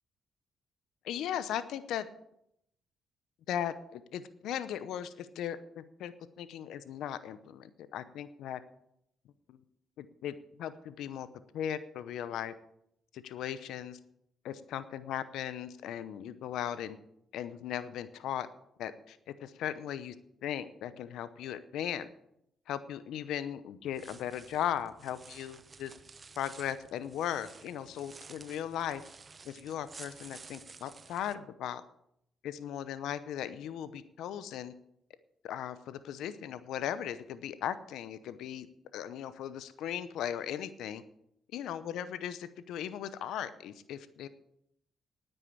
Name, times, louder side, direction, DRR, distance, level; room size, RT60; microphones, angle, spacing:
voice 1, 1.0-2.1 3.5-8.6 9.5-9.6 10.0-11.3 11.5-12.5 13.1-14.0 14.4-17.0 17.3-18.5 18.8-20.1 20.4-22.1 22.7-25.9 26.4-29.0 29.4-31.8 32.4-34.7 35.4-38.7 38.9-41.0 41.5-44.3, left 10 dB, 80° left, 14 dB, 0.7 m, -37 dB
sound 1, 23.9-31.3, right 4 dB, 40° right, 0.9 m, -53 dB
9.7 x 9.0 x 8.3 m, 0.76 s
supercardioid pair, 60°, 0 cm